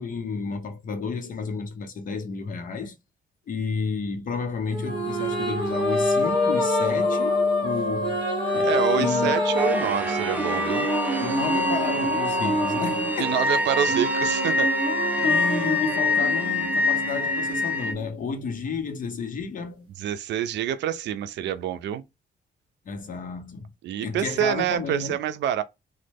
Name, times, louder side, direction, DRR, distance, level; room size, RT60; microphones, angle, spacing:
voice 1, 0.0-2.9 3.5-8.2 8.5-9.4 11.2-13.6 15.2-19.9 22.8-23.7 24.0-25.2, left 5 dB, 50° left, 0.8 m, -31 dB
sound 1, 4.7-18.3, equal, 25° right, 1.9 m, -26 dB
voice 2, 8.6-10.9 13.2-14.7 15.2-15.3 20.0-22.0 23.8-25.6, right 10 dB, 90° right, 0.4 m, -27 dB
sound 2, 9.6-17.9, left 2 dB, 10° right, 0.5 m, -26 dB
3.1 x 2.2 x 3.3 m
cardioid pair, 145°, 18 cm